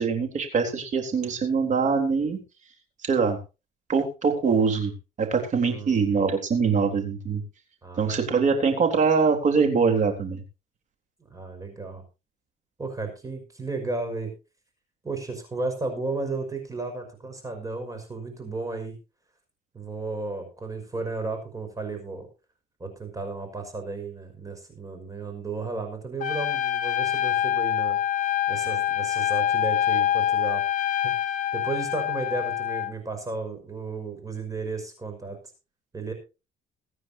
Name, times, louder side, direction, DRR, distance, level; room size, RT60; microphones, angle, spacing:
voice 1, 0.0-2.4 3.0-3.4 3.9-4.9 5.2-7.4 8.0-10.4, right 5 dB, 45° right, 5 dB, 3.6 m, -23 dB
voice 2, 5.7-6.0 7.8-8.2 11.3-12.0 12.8-14.3 15.0-18.9 19.7-22.3 22.8-28.0 28.5-30.6 30.9-31.1 31.5-35.4 35.9-36.1, right 3 dB, 20° right, 5 dB, 5.6 m, -34 dB
Trumpet, 26.2-32.9, left 11 dB, 50° left, 1.2 m, -25 dB
22.5 x 9.5 x 2.8 m, 0.30 s
cardioid pair, 110°, 17 cm